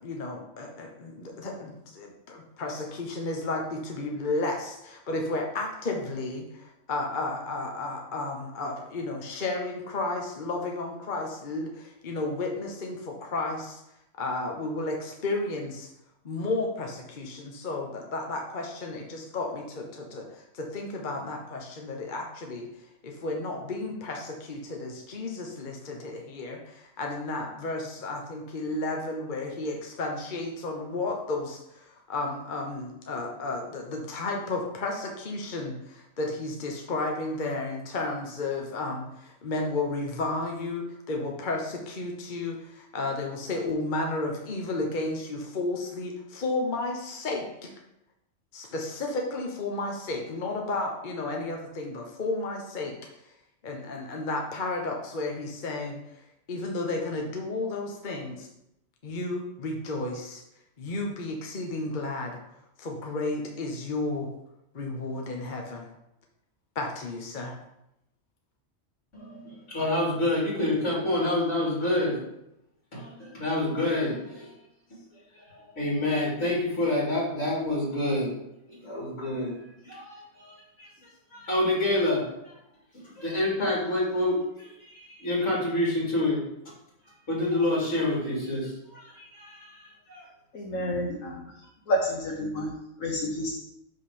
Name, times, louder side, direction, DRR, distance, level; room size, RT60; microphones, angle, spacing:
voice 1, 0.0-13.8 14.2-15.9 16.2-47.7 48.5-53.3 53.6-58.5 59.0-60.4 60.8-62.4 62.8-64.3 64.7-65.9 66.7-67.6, left 2 dB, 40° left, 1 dB, 1.0 m, -33 dB
voice 2, 69.1-72.2 72.9-74.5 75.5-78.3 78.7-79.5 79.8-80.9 81.3-82.5 83.2-86.4 87.3-90.2, left 1 dB, 65° left, -6 dB, 3.1 m, -28 dB
voice 3, 90.5-91.4 91.9-92.7 93.0-93.6, left 1 dB, 90° left, -3 dB, 1.6 m, -29 dB
6.1 x 5.7 x 5.0 m, 0.83 s
omnidirectional pair, 1.4 m